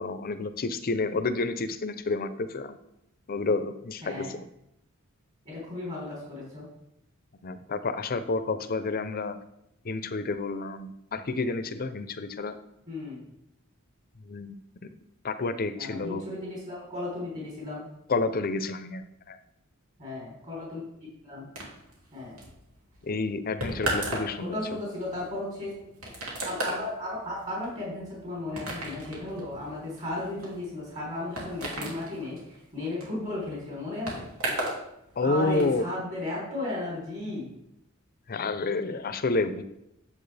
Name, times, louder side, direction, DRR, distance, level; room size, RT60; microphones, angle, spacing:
voice 1, 0.0-2.8 3.3-4.5 7.4-9.4 9.8-12.6 14.2-14.6 14.8-14.9 15.2-16.2 18.1-19.4 23.0-24.8 35.2-35.8 38.3-39.6, left 3 dB, 45° left, 11 dB, 0.6 m, -29 dB
voice 2, 5.5-6.7 12.9-13.2 15.8-17.9 20.0-20.8 21.2-21.5 22.1-22.4 24.4-25.7 26.4-34.3 35.2-37.5, left 2 dB, 35° right, -5 dB, 3.8 m, -35 dB
sound 1, 21.6-34.8 35.1-35.7, right 1 dB, 80° right, 2.7 m, -36 dB
10.0 x 7.3 x 3.4 m, 0.81 s
head